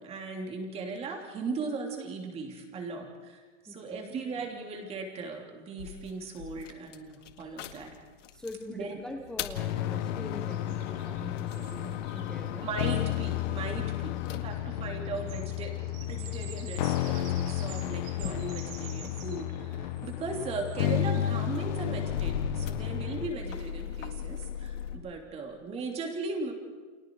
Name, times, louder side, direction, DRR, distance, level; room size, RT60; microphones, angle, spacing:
voice 1, 0.0-8.0 8.7-9.0 12.6-15.7 16.1-26.5, right 3 dB, 15° right, 2 dB, 3.0 m, -38 dB
voice 2, 3.7-4.0 8.3-12.7, left 2 dB, ahead, 1 dB, 0.6 m, -42 dB
sound 1, 5.8-8.7 9.1-15.9 16.6-19.3 19.6-25.0, left 8 dB, 90° left, 2.0 m, -40 dB
sound 2, 9.5-23.3, left 12 dB, 40° left, 0.9 m, -32 dB
sound 3, 10.4-13.3 14.2-14.3 14.5-21.7 23.5-23.6 24.0-24.2, right 7 dB, 35° right, 5.8 m, -50 dB
30.0 x 27.5 x 4.8 m, 1.5 s
supercardioid pair, 170°, 36 cm